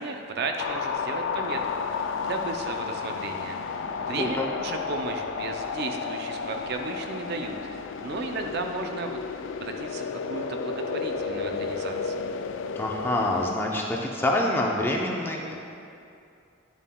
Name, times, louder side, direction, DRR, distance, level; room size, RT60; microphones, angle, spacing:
voice 1, 0.0-9.2 9.6-12.1, right 3 dB, 50° right, 4 dB, 0.4 m, -34 dB
sound 1, 0.6-13.6, left 5 dB, 60° left, 0.3 m, -32 dB
voice 2, 4.2-4.5 12.8-15.5, left 1 dB, 10° left, -1 dB, 0.6 m, -26 dB
10.0 x 7.2 x 2.2 m, 2.6 s
head